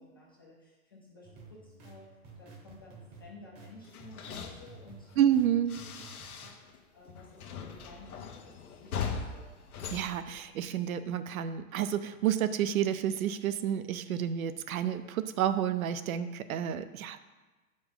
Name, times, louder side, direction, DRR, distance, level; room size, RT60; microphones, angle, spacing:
voice 1, 0.0-5.2 5.9-9.5 9.9-10.2, left 2 dB, 20° left, -5 dB, 0.3 m, -54 dB
sound 1, 1.2-6.5, right 3 dB, 20° right, 0.9 m, -52 dB
sound 2, 3.8-6.8 7.0-10.9, left 6 dB, 85° left, 0.9 m, -41 dB
voice 2, 5.2-5.8 9.9-17.2, right 10 dB, 70° right, 12 dB, 0.6 m, -30 dB
6.9 x 5.2 x 3.8 m, 1.2 s
hypercardioid pair, 155°, 43 cm